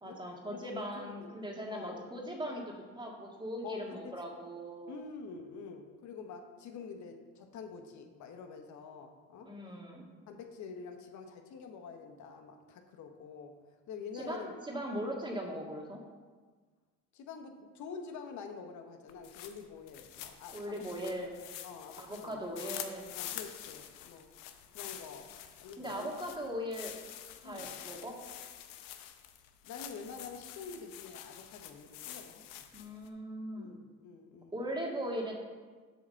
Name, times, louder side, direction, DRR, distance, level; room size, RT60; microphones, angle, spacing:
voice 1, 0.0-5.0 9.4-10.1 14.1-16.0 20.5-21.4 22.0-23.1 25.8-26.9 27.4-28.2 32.7-33.7 34.5-35.3, equal, 15° right, 0 dB, 2.0 m, -39 dB
voice 2, 0.6-1.3 1.7-2.0 3.6-4.2 4.9-9.5 10.3-13.5 13.9-14.6 17.1-20.8 21.6-22.5 23.1-24.3 24.7-25.3 25.6-26.2 27.4-27.7 29.6-32.7 33.6-34.6, left 5 dB, 60° left, 5 dB, 1.2 m, -47 dB
sound 1, 19.1-33.1, left 11 dB, 85° left, 0.8 m, -47 dB
7.9 x 4.9 x 6.4 m, 1.4 s
supercardioid pair, 90°, 32 cm